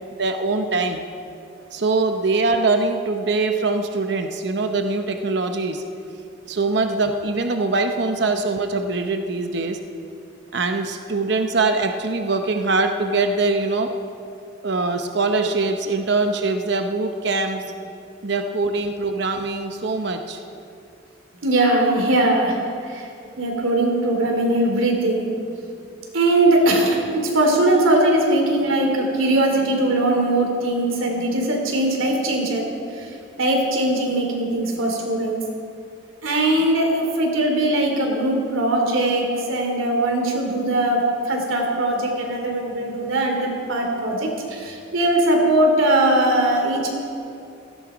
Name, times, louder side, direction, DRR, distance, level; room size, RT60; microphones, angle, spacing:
voice 1, 0.2-1.0 1.7-5.8 6.5-9.8 10.5-13.9 14.6-17.6 18.2-20.4, right 3 dB, 55° right, 6 dB, 0.8 m, -23 dB
voice 2, 21.4-22.6 22.9-23.1 23.4-25.6 26.1-32.7 32.9-35.4 36.2-46.9, right 1 dB, 90° right, 1 dB, 3.1 m, -20 dB
16.5 x 15.0 x 5.1 m, 2.7 s
head